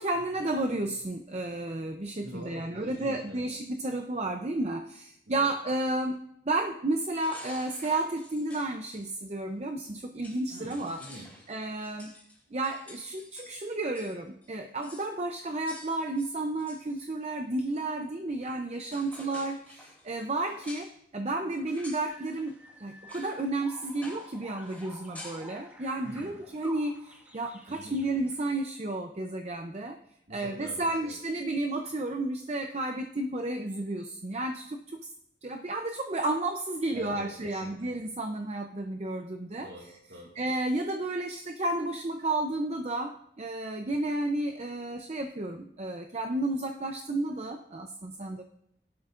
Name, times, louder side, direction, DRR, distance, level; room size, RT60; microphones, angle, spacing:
voice 1, 0.0-11.0 11.5-12.1 12.5-22.5 22.8-30.0 30.3-35.1 35.4-39.7 40.4-48.4, right 2 dB, 35° right, 5 dB, 0.6 m, -32 dB
voice 2, 2.2-3.4 5.3-5.5 10.5-11.4 26.0-26.4 27.7-28.0 30.3-31.1 36.9-37.9 39.6-40.3, right 1 dB, 70° right, -2 dB, 2.0 m, -45 dB
sound 1, 7.2-9.0 9.9-10.0 10.2-14.2 14.4-14.5 14.8-15.1 15.7-17.1 18.4-18.5 18.8-20.9 21.6-22.1 22.5-22.6 23.1-23.4 23.7-24.4 24.6-25.5, left 2 dB, 10° left, 3.4 m, -49 dB
sound 2, 22.0-28.5, right 1 dB, 10° right, 1.5 m, -50 dB
16.5 x 11.5 x 2.5 m, 0.77 s
head